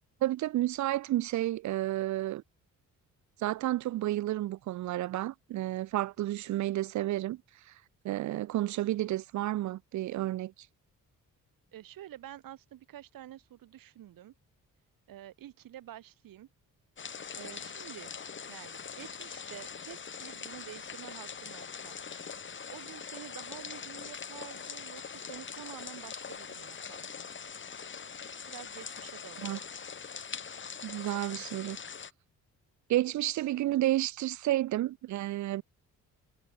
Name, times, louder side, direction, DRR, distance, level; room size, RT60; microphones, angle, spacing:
voice 1, 0.2-2.4 3.4-7.4 8.0-10.5 29.4-29.6 30.8-31.8 32.9-35.6, right 15 dB, 60° right, 0.5 m, -31 dB
voice 2, 11.7-14.3 15.1-16.5 17.3-18.2 18.5-22.0 22.7-27.1 28.5-29.6, right 12 dB, 85° right, 2.8 m, -49 dB
sound 1, 17.0-32.1, left 6 dB, 35° left, 1.4 m, -43 dB
cardioid pair, 100°, 33 cm